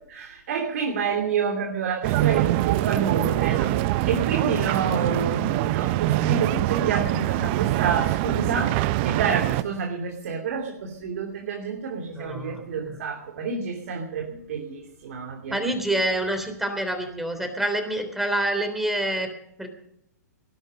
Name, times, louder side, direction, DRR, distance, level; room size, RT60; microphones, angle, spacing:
voice 1, 0.1-15.9, right 5 dB, 60° right, 2 dB, 2.9 m, -29 dB
sound 1, 2.0-9.6, right 16 dB, 40° right, 0.7 m, -24 dB
voice 2, 12.2-12.7 15.5-19.3 19.6-19.7, right 1 dB, 5° right, 6 dB, 3.4 m, -27 dB
19.5 x 11.0 x 5.4 m, 0.73 s
hypercardioid pair, 120°, 9 cm